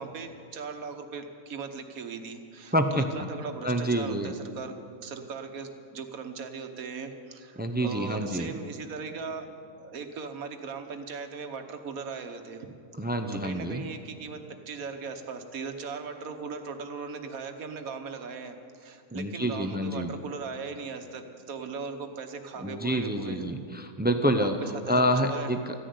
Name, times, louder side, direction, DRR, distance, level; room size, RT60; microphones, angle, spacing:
voice 1, 0.0-4.7 5.0-9.5 9.8-12.7 13.4-14.4 14.7-23.5 24.4-24.9 25.2-25.5, right 5 dB, 90° right, 6 dB, 1.6 m, -38 dB
voice 2, 2.7-3.0 3.6-4.3 7.6-8.5 13.0-13.8 19.1-20.1 22.6-24.6 24.9-25.9, equal, 15° right, 7 dB, 0.4 m, -27 dB
14.5 x 10.5 x 9.5 m, 2.3 s
omnidirectional pair, 1.4 m